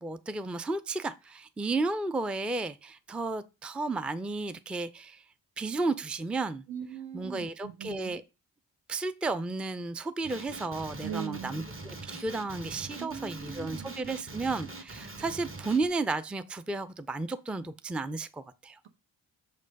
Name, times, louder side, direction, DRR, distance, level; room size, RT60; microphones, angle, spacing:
voice 1, 0.0-5.2 5.6-6.6 7.1-8.2 8.9-18.8, right 3 dB, 5° right, 0.4 m, -33 dB
voice 2, 6.7-8.2 11.0-11.7 13.0-13.9, right 9 dB, 75° right, 1.1 m, -40 dB
Male speech man speaking, 10.2-15.9, right 2 dB, 25° right, 1.2 m, -43 dB
6.5 x 3.2 x 5.2 m
supercardioid pair, 50°, 45 cm